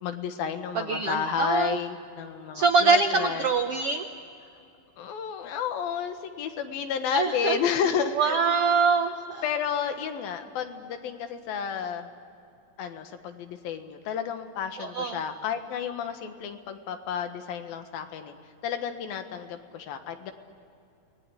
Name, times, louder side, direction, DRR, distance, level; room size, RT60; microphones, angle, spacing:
voice 1, 0.0-3.5 5.0-8.4 9.4-12.1 12.8-18.3 18.6-20.3, left 7 dB, 85° left, 7 dB, 3.4 m, -31 dB
voice 2, 0.7-1.8 2.5-4.1 7.1-7.6 8.1-9.4 14.8-15.2, right 4 dB, 75° right, 6 dB, 1.3 m, -24 dB
29.5 x 20.5 x 9.9 m, 2.6 s
omnidirectional pair, 4.1 m